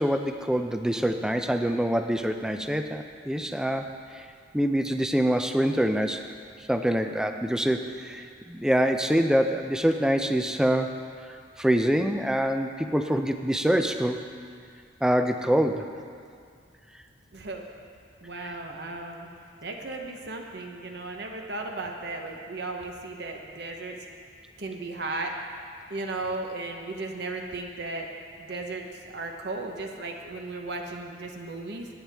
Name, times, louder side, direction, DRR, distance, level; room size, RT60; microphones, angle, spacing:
voice 1, 0.0-4.3 4.5-6.3 6.7-14.2 15.0-15.9, equal, 5° right, 6 dB, 0.4 m, -25 dB
voice 2, 17.3-17.6 18.2-19.3 19.6-24.0 24.6-25.3 25.9-28.1 28.4-31.9, right 2 dB, 55° right, 2 dB, 0.9 m, -35 dB
17.5 x 9.2 x 3.5 m, 2.2 s
head